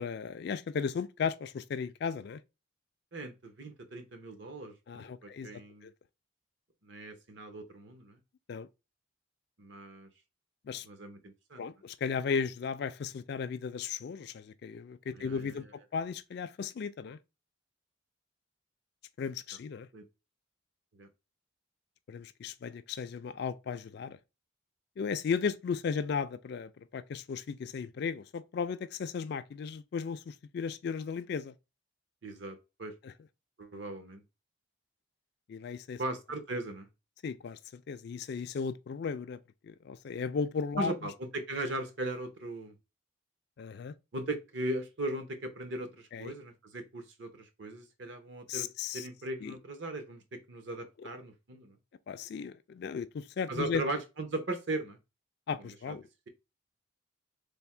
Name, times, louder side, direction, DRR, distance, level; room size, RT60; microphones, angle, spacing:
voice 1, 0.0-2.4 4.9-5.5 5.8-5.9 8.5-8.7 10.6-10.9 11.6-15.6 15.9-17.2 19.2-19.9 22.1-24.2 25.0-31.5 33.0-33.1 35.5-36.0 37.2-40.9 43.6-43.9 46.1-46.3 48.5-49.1 49.4-49.5 51.0-51.1 52.1-53.8 55.5-56.1, left 6 dB, 55° left, 0.3 m, -35 dB
voice 2, 3.1-5.9 6.8-8.2 9.6-10.1 10.8-11.6 15.1-15.7 19.9-20.0 21.0-21.1 32.2-32.9 33.6-34.2 36.0-36.9 40.8-42.7 44.1-48.7 48.9-51.8 53.5-55.0 55.9-56.0, right 2 dB, 60° right, 0.8 m, -38 dB
3.4 x 2.1 x 4.3 m
head